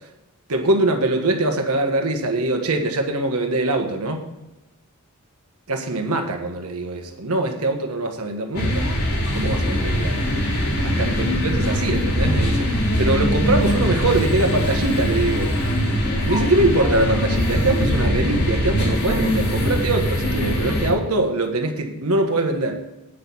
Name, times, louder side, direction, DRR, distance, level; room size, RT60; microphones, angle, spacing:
voice 1, 0.5-4.2 5.7-8.8 9.3-10.2 10.8-15.5 16.2-22.8, right 2 dB, 85° right, 4 dB, 1.5 m, -23 dB
sound 1, 8.5-20.9, equal, 90° left, 3.9 m, -22 dB
9.3 x 6.1 x 7.0 m, 1.0 s
head